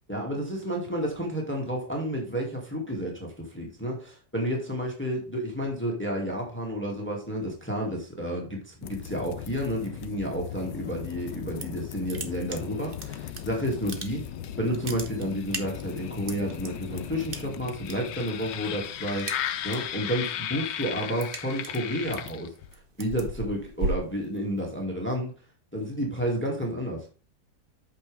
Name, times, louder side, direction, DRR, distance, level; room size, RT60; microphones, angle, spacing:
voice 1, 0.1-14.3 14.6-25.3 25.7-27.1, equal, 5° left, 0 dB, 2.0 m, -31 dB
sound 1, 8.8-22.7, left 10 dB, 80° left, 1.4 m, -37 dB
sound 2, 11.3-11.8 12.1-13.4 13.7-14.4 14.7-16.7 17.3-17.9 18.2-18.6 18.9-19.9 20.3-24.8, right 3 dB, 35° right, 1.1 m, -36 dB
8.6 x 6.2 x 3.4 m, 0.35 s
omnidirectional pair, 1.9 m